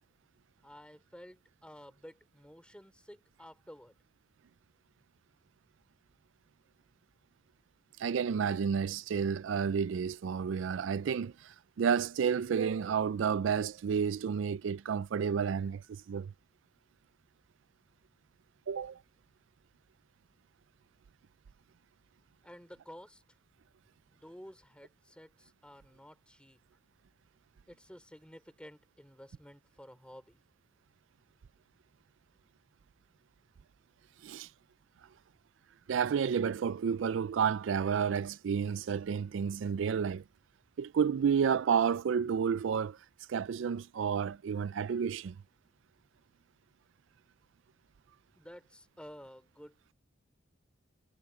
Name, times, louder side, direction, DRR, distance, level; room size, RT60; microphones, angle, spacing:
voice 1, 0.6-4.0 22.4-23.2 24.1-26.6 27.7-30.4 48.4-49.9, equal, 5° left, 4.2 m, -52 dB
voice 2, 8.0-16.3 18.7-19.0 34.2-34.5 35.9-40.2 40.8-43.0 43.3-45.4, right 7 dB, 75° right, 0.4 m, -31 dB
head